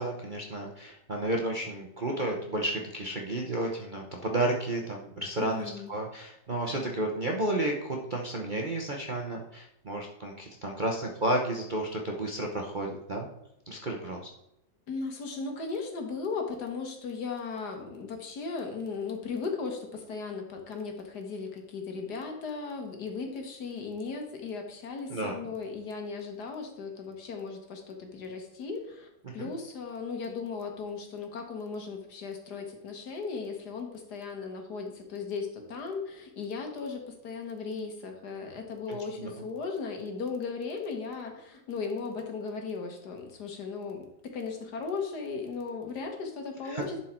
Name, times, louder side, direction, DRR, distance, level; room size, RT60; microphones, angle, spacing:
voice 1, 0.0-13.3 13.7-14.3 25.1-25.3 29.2-29.5 38.9-39.3 46.6-46.8, right 1 dB, 40° right, -1 dB, 0.8 m, -32 dB
voice 2, 5.4-5.9 14.9-44.1 44.3-47.0, left 4 dB, 65° left, 3 dB, 1.8 m, -37 dB
11.0 x 4.6 x 4.4 m, 0.85 s
omnidirectional pair, 2.0 m